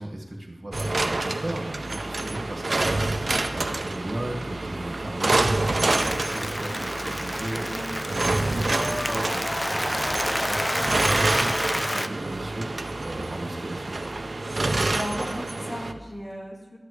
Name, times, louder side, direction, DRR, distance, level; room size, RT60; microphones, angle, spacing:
voice 1, 0.0-12.7 13.0-13.9, right 1 dB, 45° right, -1 dB, 1.9 m, -36 dB
sound 1, 0.7-15.9, right 2 dB, 60° right, 0.6 m, -27 dB
Applause, 5.9-12.1, equal, 10° left, 0.5 m, -29 dB
voice 2, 14.9-16.8, left 1 dB, 35° left, -1 dB, 2.2 m, -35 dB
13.0 x 10.5 x 3.3 m, 1.2 s
wide cardioid pair, 50°, 0 cm